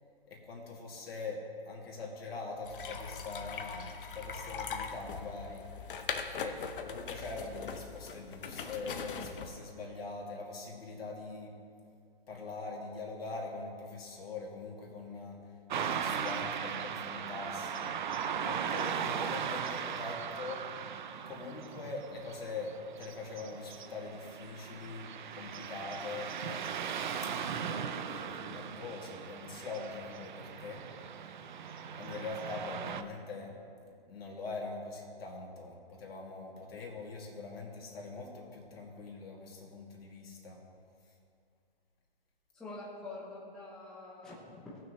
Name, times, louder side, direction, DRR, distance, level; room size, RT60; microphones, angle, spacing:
voice 1, 0.3-1.4 1.7-5.6 6.1-11.5 12.3-15.4 15.7-17.9 18.3-20.6 21.3-26.6 27.5-30.8 32.0-33.5 33.8-40.6, left 3 dB, 75° left, -2 dB, 2.5 m, -43 dB
sound 1, 2.6-9.5, left 6 dB, 60° left, 0.8 m, -41 dB
Car passing by / Traffic noise roadway noise, 15.7-33.0, right 7 dB, 50° right, 0.5 m, -38 dB
voice 2, 42.5-44.8, left 2 dB, ahead, -7 dB, 0.7 m, -46 dB
17.5 x 6.2 x 3.2 m, 2.3 s
hypercardioid pair, 155°, 30 cm